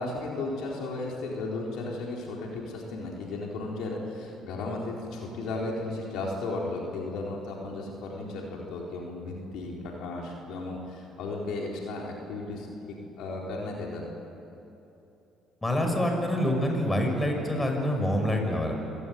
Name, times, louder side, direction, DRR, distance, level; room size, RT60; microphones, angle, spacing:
voice 1, 0.0-14.0, left 2 dB, 75° left, -1 dB, 4.2 m, -35 dB
voice 2, 15.6-18.8, left 1 dB, 15° left, 3 dB, 6.0 m, -26 dB
26.0 x 17.0 x 9.4 m, 2.9 s
supercardioid pair, 75°, 0 cm